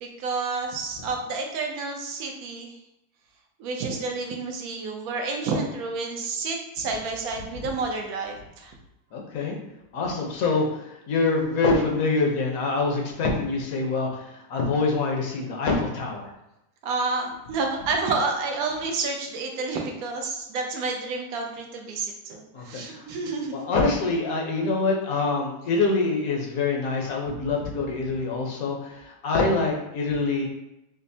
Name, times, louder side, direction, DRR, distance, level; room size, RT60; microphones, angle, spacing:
voice 1, 0.0-2.7 3.6-8.8 16.8-23.6, right 3 dB, 70° right, 2 dB, 1.0 m, -30 dB
voice 2, 9.1-9.6 9.9-16.3 22.5-23.0 23.5-30.5, left 3 dB, 65° left, 0 dB, 1.1 m, -25 dB
5.2 x 2.1 x 2.6 m, 0.87 s
omnidirectional pair, 1.8 m